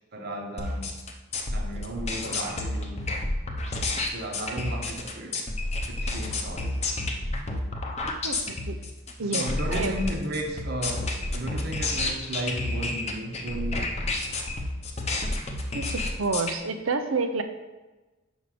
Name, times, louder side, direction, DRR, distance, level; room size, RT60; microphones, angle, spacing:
voice 1, 0.1-0.9 1.5-3.1 4.1-5.4 5.9-6.8 9.2-13.9, right 1 dB, 50° right, 2 dB, 1.1 m, -34 dB
sound 1, 0.6-16.5, left 2 dB, 30° left, 0.8 m, -30 dB
voice 2, 8.2-8.8 9.2-9.9 15.7-17.4, right 4 dB, 85° right, 8 dB, 0.7 m, -29 dB
6.5 x 5.2 x 4.9 m, 1.2 s
head